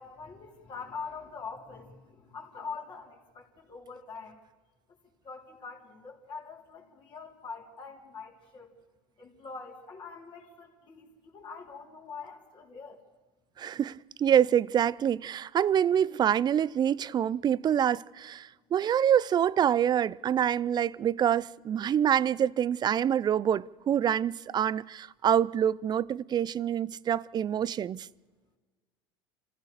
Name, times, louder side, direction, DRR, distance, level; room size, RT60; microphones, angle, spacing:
voice 1, 0.0-4.4 5.2-8.7 9.2-13.0, left 5 dB, 40° left, 3.6 m, -44 dB
voice 2, 13.6-28.1, right 9 dB, 35° right, 0.5 m, -26 dB
26.0 x 15.0 x 6.8 m
supercardioid pair, 95°, 13 cm